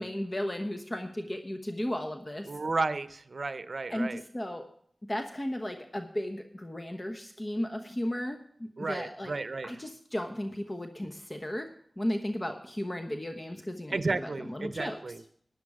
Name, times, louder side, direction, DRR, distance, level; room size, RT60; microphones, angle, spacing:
voice 1, 0.0-2.5 3.9-4.7 5.1-9.3 9.6-11.7 12.0-15.0, left 1 dB, 30° left, 5 dB, 1.0 m, -35 dB
voice 2, 2.5-4.2 8.8-9.8 13.9-15.2, right 3 dB, 65° right, 13 dB, 0.7 m, -33 dB
13.0 x 9.8 x 4.9 m, 0.64 s
wide cardioid pair, 65°, 0 cm